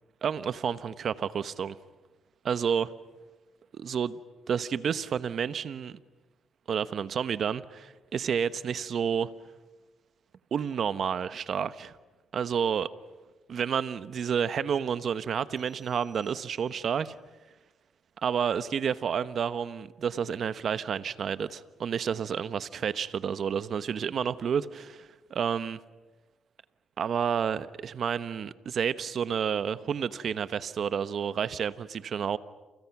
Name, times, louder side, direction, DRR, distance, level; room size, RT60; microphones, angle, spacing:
voice 1, 0.2-1.8 2.4-2.9 3.7-4.2 4.5-6.0 6.7-9.3 10.5-11.9 12.3-12.9 13.5-17.1 18.2-25.8 27.0-32.4, right 7 dB, 55° right, 1.0 m, -30 dB
sound 1, 15.6-17.1, left 1 dB, 35° left, 4.9 m, -64 dB
29.0 x 29.0 x 6.0 m
cardioid pair, 90°, 0 cm